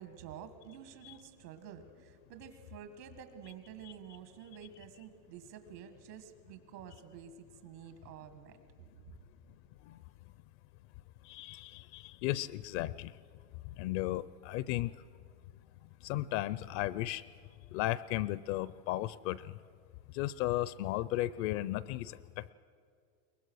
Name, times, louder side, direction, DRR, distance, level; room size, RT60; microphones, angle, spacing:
voice 1, 0.0-8.6, right 9 dB, 75° right, 9 dB, 2.0 m, -50 dB
voice 2, 11.2-13.1 13.8-14.9 16.0-17.2 17.7-19.5 20.1-22.5, left 15 dB, 45° left, 19 dB, 0.5 m, -35 dB
23.0 x 19.5 x 6.4 m, 2.1 s
supercardioid pair, 125°, 49 cm